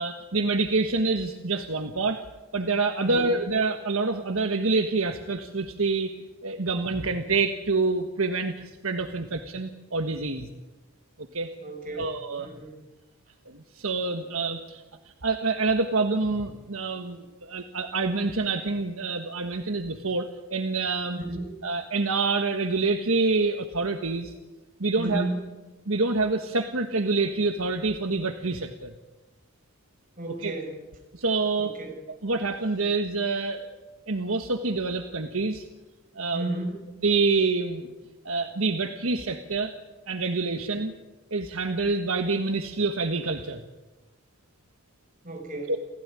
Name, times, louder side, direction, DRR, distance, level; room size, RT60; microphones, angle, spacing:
voice 1, 0.0-2.2 2.5-6.1 6.4-10.5 11.3-11.5 12.0-12.5 13.5-14.8 15.2-21.2 21.6-24.3 24.8-25.3 25.9-28.9 30.4-30.5 31.1-31.7 32.2-33.8 34.1-35.6 36.1-36.6 37.0-37.9 38.2-39.7 40.1-40.9 41.3-43.6, right 3 dB, 70° right, 6 dB, 1.5 m, -27 dB
voice 2, 3.0-3.3 11.6-12.1 12.4-12.8 21.2-21.4 24.9-25.4 30.2-30.7 31.6-32.0 36.3-36.8 45.2-45.7, right 1 dB, 40° right, 3 dB, 6.1 m, -33 dB
28.5 x 16.5 x 9.9 m, 1.2 s
head